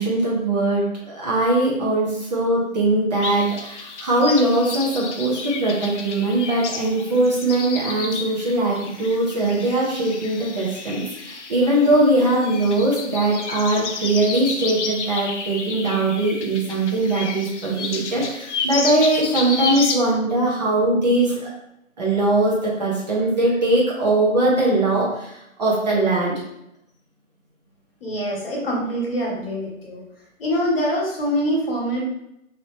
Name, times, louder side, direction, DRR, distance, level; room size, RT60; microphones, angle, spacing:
voice 1, 0.0-21.5 22.0-26.4, right 2 dB, 30° right, -5 dB, 0.7 m, -21 dB
sound 1, 3.2-20.0, left 4 dB, 60° left, 0.6 m, -31 dB
voice 2, 28.0-30.0 30.4-32.1, equal, 45° left, -3 dB, 1.2 m, -24 dB
3.0 x 2.9 x 3.2 m, 0.82 s
hypercardioid pair, 160°, 40 cm